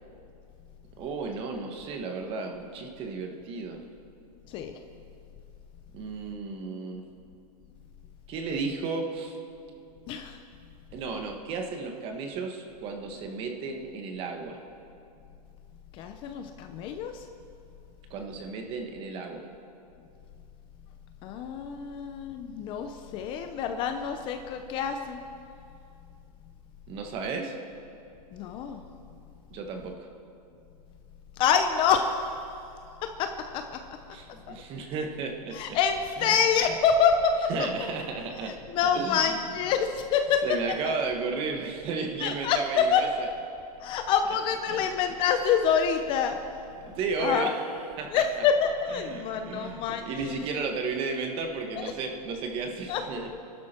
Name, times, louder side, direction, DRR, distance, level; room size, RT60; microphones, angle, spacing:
voice 1, 1.0-3.8 5.9-7.0 8.3-9.4 10.9-14.6 18.1-19.4 26.9-27.5 29.5-30.0 34.1-35.6 36.2-36.4 37.5-38.6 38.9-39.5 40.4-43.1 44.7-44.9 46.8-47.7 48.0-48.2 48.9-53.4, right 4 dB, 25° right, 4 dB, 1.6 m, -34 dB
voice 2, 10.1-10.4 15.9-17.2 21.2-25.2 28.3-28.8 31.4-32.4 33.2-33.3 33.5-33.6 35.5-37.3 37.8-37.9 38.7-40.4 42.2-43.0 43.8-46.4 47.2-47.5 48.1-50.4 51.7-51.8 52.9-53.0, left 7 dB, 25° left, 6 dB, 0.7 m, -26 dB
26.0 x 12.0 x 4.5 m, 2.6 s
hypercardioid pair, 155°, 20 cm